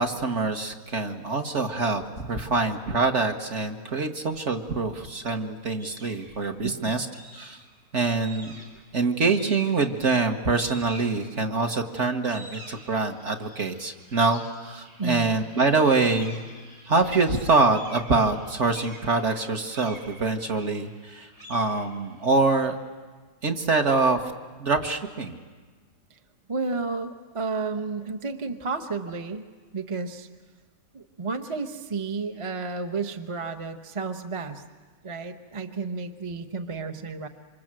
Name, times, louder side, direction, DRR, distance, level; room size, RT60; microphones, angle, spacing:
voice 1, 0.0-7.1 7.3-7.6 7.9-8.6 8.9-16.4 16.9-22.7 23.4-24.2 24.6-25.4, right 3 dB, 45° right, 4 dB, 1.7 m, -25 dB
sound 1, 5.8-6.3 7.1-7.8 8.2-8.9 9.3-10.0 10.6-11.6 12.0-22.7, right 1 dB, 80° right, 6.1 m, -47 dB
voice 2, 6.6-6.9 15.0-15.4 26.1-26.2 26.5-29.4 29.7-30.3 30.9-34.6 35.0-37.3, right 4 dB, 25° right, 7 dB, 0.7 m, -32 dB
27.5 x 25.5 x 7.6 m, 1.4 s
omnidirectional pair, 1.8 m